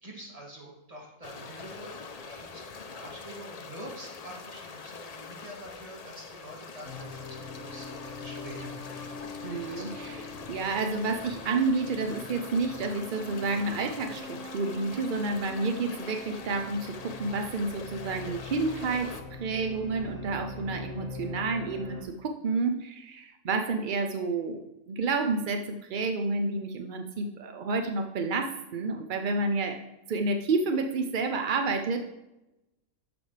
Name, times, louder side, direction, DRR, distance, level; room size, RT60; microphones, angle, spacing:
voice 1, 0.0-10.2, right 1 dB, 25° right, -3 dB, 2.4 m, -46 dB
sound 1, 1.2-19.2, left 5 dB, 80° left, 0.3 m, -44 dB
sound 2, 6.8-22.0, left 3 dB, 35° left, 2.2 m, -43 dB
voice 2, 9.4-10.2 10.5-19.1 19.4-29.8 30.1-32.0, right 3 dB, 60° right, 6 dB, 0.5 m, -30 dB
11.0 x 7.0 x 3.3 m, 0.95 s
omnidirectional pair, 1.6 m